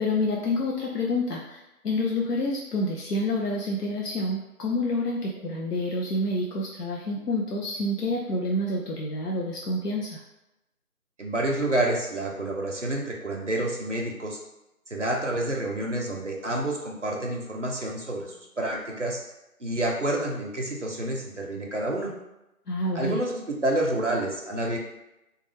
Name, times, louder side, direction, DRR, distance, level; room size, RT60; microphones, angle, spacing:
voice 1, 0.0-10.2 22.7-23.2, left 1 dB, 90° left, -3 dB, 0.6 m, -28 dB
voice 2, 11.2-14.4 14.9-19.2 19.6-22.1 22.9-24.8, right 1 dB, 55° right, -1 dB, 0.5 m, -28 dB
2.2 x 2.2 x 3.1 m, 0.93 s
figure-of-eight pair, 175°, 46 cm